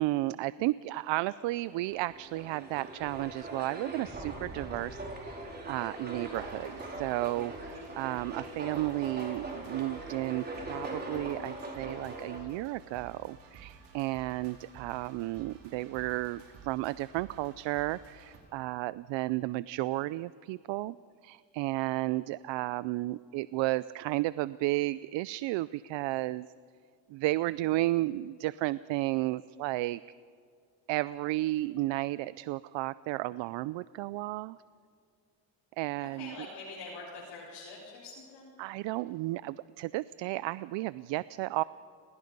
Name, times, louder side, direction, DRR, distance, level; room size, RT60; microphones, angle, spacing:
voice 1, 0.0-21.0 21.2-26.5 27.1-30.0 30.9-34.6 35.8-36.3 38.6-41.6, right 18 dB, 90° right, 17 dB, 0.5 m, -33 dB
sound 1, 1.6-12.4, right 2 dB, 20° right, 4.5 m, -41 dB
sound 2, 6.3-18.4, right 5 dB, 70° right, 5.3 m, -53 dB
voice 2, 36.0-38.5, left 3 dB, 70° left, -6 dB, 7.1 m, -45 dB
29.5 x 20.5 x 5.4 m, 2.2 s
cardioid pair, 140°, 43 cm